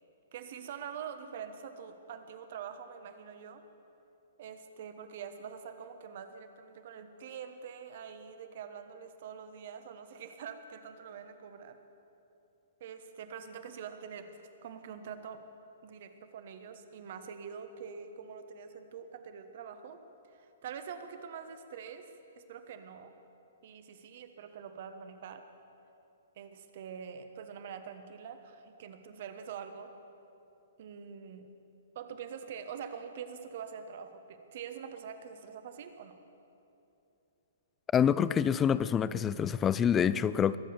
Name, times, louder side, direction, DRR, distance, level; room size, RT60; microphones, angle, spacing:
voice 1, 0.3-3.6 4.4-11.8 12.8-14.3 14.6-15.4 15.8-20.0 20.3-22.1 22.3-23.1 23.6-25.4 26.3-29.9 30.8-31.5 31.9-36.2, right 7 dB, 55° right, 8 dB, 1.2 m, -45 dB
voice 2, 37.9-40.6, left 8 dB, 20° left, 17 dB, 0.4 m, -26 dB
22.0 x 7.6 x 7.0 m, 2.9 s
figure-of-eight pair, 120°, 0 cm